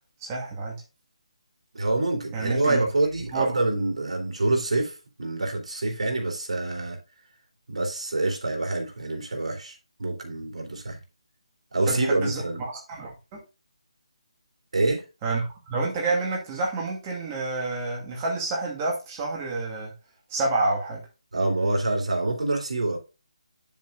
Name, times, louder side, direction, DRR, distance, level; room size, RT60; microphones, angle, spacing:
voice 1, 0.2-0.8 2.3-2.8 3.3-3.5 11.9-13.4 15.2-19.9 20.3-21.0, right 3 dB, 20° right, 2.3 m, -29 dB
voice 2, 1.7-7.0 7.7-11.0 11.7-12.6 14.7-15.0 21.3-23.0, right 2 dB, 75° right, 3.3 m, -26 dB
8.4 x 7.3 x 2.4 m
hypercardioid pair, 165°, 3 cm